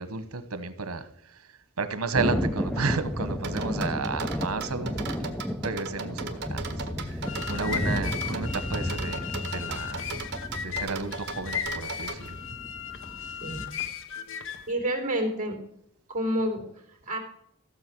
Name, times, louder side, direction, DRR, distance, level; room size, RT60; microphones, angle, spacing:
voice 1, 0.0-1.5 1.8-10.0 10.6-12.4, right 3 dB, 85° right, 1.1 m, -33 dB
Thunder, 2.1-13.7, equal, 5° left, 0.5 m, -33 dB
sound 1, 3.4-12.2, right 5 dB, 55° right, 1.4 m, -37 dB
sound 2, 7.1-14.7, left 8 dB, 60° left, 0.8 m, -36 dB
voice 2, 14.7-15.6 16.1-17.2, right 1 dB, 35° right, 3.3 m, -29 dB
15.5 x 7.1 x 6.1 m
head